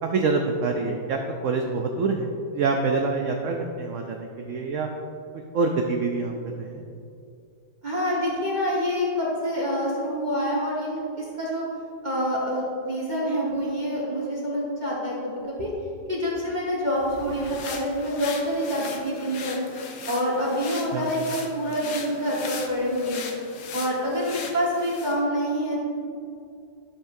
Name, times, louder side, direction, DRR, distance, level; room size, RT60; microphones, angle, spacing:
voice 1, 0.0-4.9 5.5-6.3 6.6-6.8 20.9-21.1, right 4 dB, 70° right, 3 dB, 0.7 m, -26 dB
voice 2, 7.8-11.6 12.0-15.7 16.1-19.6 20.1-23.3 23.7-25.9, equal, 30° right, -6 dB, 1.5 m, -27 dB
sound 1, 17.0-25.2, left 5 dB, 80° left, 1.4 m, -39 dB
11.5 x 7.2 x 2.7 m, 2.5 s
omnidirectional pair, 1.8 m